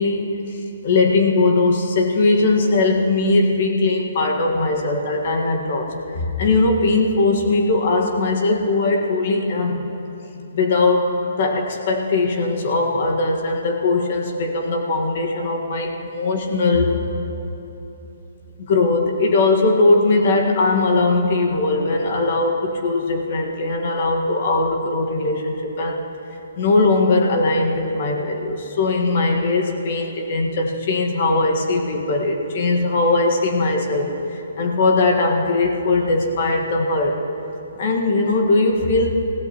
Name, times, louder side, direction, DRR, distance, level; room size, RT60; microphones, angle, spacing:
voice 1, 0.0-9.8 10.5-17.1 18.6-26.0 26.6-37.2 37.7-39.1, left 3 dB, 45° left, 1 dB, 1.7 m, -20 dB
25.0 x 16.5 x 3.1 m, 3.0 s
hypercardioid pair, 170°, 0 cm